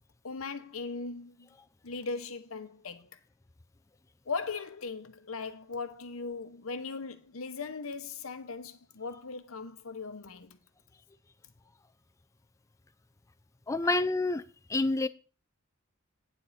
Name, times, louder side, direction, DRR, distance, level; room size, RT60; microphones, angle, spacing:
voice 1, 0.2-1.5 1.8-3.2 4.3-10.6 13.8-14.0, left 4 dB, 90° left, 1.0 m, -39 dB
voice 2, 13.7-14.4 14.7-15.1, left 2 dB, 15° left, 0.4 m, -27 dB
9.2 x 7.3 x 4.2 m
head